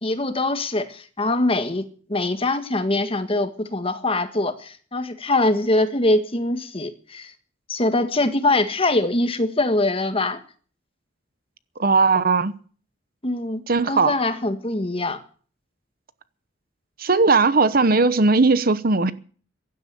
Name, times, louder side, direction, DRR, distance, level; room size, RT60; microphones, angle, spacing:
voice 1, 0.0-7.3 7.7-10.4 13.2-13.6 13.9-15.2, left 2 dB, 30° left, 1.6 m, -23 dB
voice 2, 11.8-12.5 13.7-14.2 17.0-19.1, right 3 dB, 50° right, 1.0 m, -18 dB
16.5 x 11.5 x 7.0 m
head